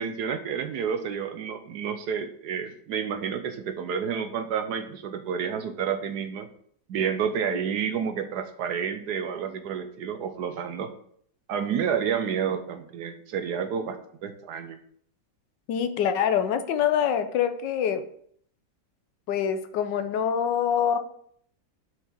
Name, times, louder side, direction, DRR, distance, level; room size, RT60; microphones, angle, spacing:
voice 1, 0.0-6.5 6.9-10.9 11.5-14.8, right 7 dB, 65° right, 8 dB, 1.1 m, -30 dB
voice 2, 15.7-18.0 19.3-21.0, left 8 dB, 75° left, 10 dB, 1.3 m, -25 dB
6.5 x 4.8 x 5.8 m, 0.63 s
omnidirectional pair, 2.0 m